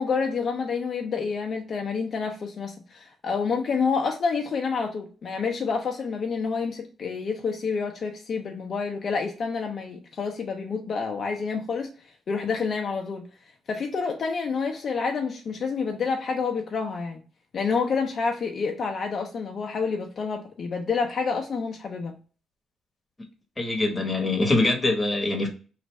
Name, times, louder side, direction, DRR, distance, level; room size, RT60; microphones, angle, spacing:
voice 1, 0.0-11.9 12.3-13.3 13.7-17.2 17.5-22.1, left 5 dB, 50° left, 0.5 m, -28 dB
voice 2, 23.6-25.5, left 2 dB, 15° left, 1.0 m, -23 dB
3.1 x 2.5 x 4.2 m
cardioid pair, 90°, 0 cm